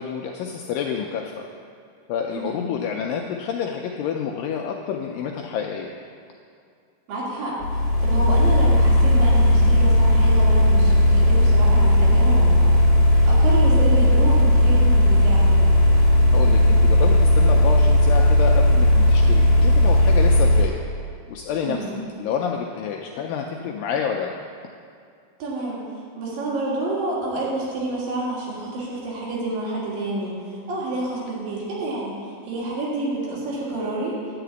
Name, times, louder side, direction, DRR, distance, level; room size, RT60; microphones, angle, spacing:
voice 1, 0.0-1.5 2.1-5.9 16.3-20.8 21.3-21.8 22.2-24.3, left 7 dB, 85° left, 1 dB, 2.0 m, -28 dB
voice 2, 2.3-2.6 7.1-12.6 12.9-15.7 21.6-21.9 25.4-25.8 26.2-32.1 32.4-34.1, right 2 dB, 65° right, -6 dB, 3.5 m, -29 dB
sound 1, 7.6-20.7, left 1 dB, 55° left, 2.0 m, -16 dB
10.5 x 4.9 x 8.0 m, 2.3 s
omnidirectional pair, 4.5 m